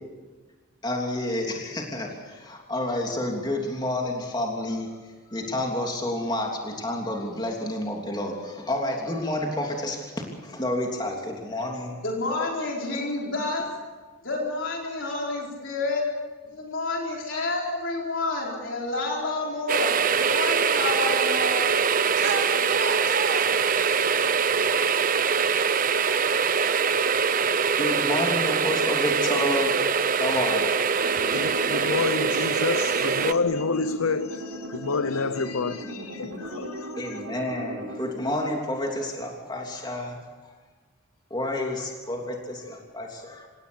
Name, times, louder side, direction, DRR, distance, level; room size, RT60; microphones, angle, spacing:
voice 1, 0.8-4.9 5.3-10.1 10.4-12.0 27.8-29.7 30.2-30.9 37.0-40.2 40.4-40.5 41.3-43.5, left 1 dB, 20° left, 3.1 m, -29 dB
voice 2, 12.0-13.7 14.2-16.0 16.5-21.5, left 2 dB, 60° left, 4.7 m, -29 dB
sound 1, 19.7-33.3, right 6 dB, 40° right, 0.7 m, -23 dB
voice 3, 22.2-24.7, right 4 dB, 60° right, 2.6 m, -33 dB
voice 4, 30.9-37.2, left 4 dB, 80° left, 0.8 m, -29 dB
sound 2, 31.0-38.1, equal, 85° right, 3.7 m, -37 dB
28.0 x 17.0 x 7.0 m
head